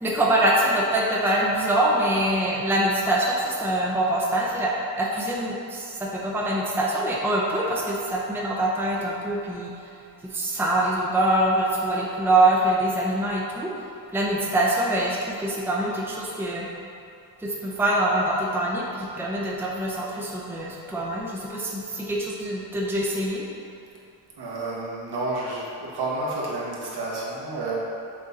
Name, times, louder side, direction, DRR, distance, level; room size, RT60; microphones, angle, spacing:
voice 1, 0.0-9.9 10.2-13.7 14.1-16.7 17.4-23.4, right 1 dB, 5° right, -4 dB, 0.6 m, -24 dB
voice 2, 24.4-27.8, right 2 dB, 70° right, -5 dB, 1.4 m, -30 dB
6.5 x 3.7 x 4.1 m, 2.6 s
wide cardioid pair, 155°, 40 cm